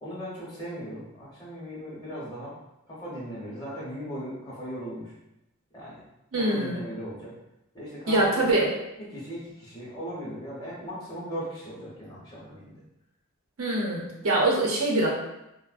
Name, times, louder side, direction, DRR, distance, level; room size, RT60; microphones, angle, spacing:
voice 1, 0.0-2.5 2.9-5.1 5.7-6.0 6.4-7.3 7.7-8.5 9.1-12.8, equal, 20° left, -7 dB, 0.8 m, -38 dB
voice 2, 6.3-6.8 8.1-8.7 13.6-15.1, right 2 dB, 80° right, -3 dB, 0.8 m, -24 dB
3.8 x 2.1 x 2.4 m, 0.89 s
head